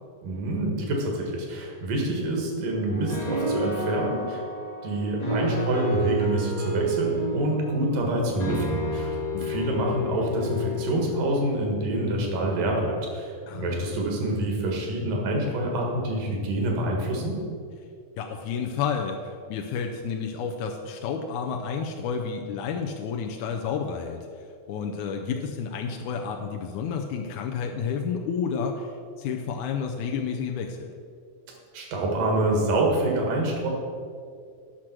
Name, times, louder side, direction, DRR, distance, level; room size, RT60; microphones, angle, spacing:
voice 1, 0.2-4.4 4.8-9.2 9.4-17.4 31.7-33.7, right 1 dB, 70° right, 0 dB, 3.1 m, -27 dB
sound 1, 2.9-11.5, equal, 35° left, 0.6 m, -30 dB
voice 2, 13.5-13.9 18.2-24.2 24.7-28.9 29.2-30.9, left 6 dB, 80° left, 2 dB, 1.8 m, -30 dB
10.0 x 6.1 x 6.0 m, 2.3 s
omnidirectional pair, 4.0 m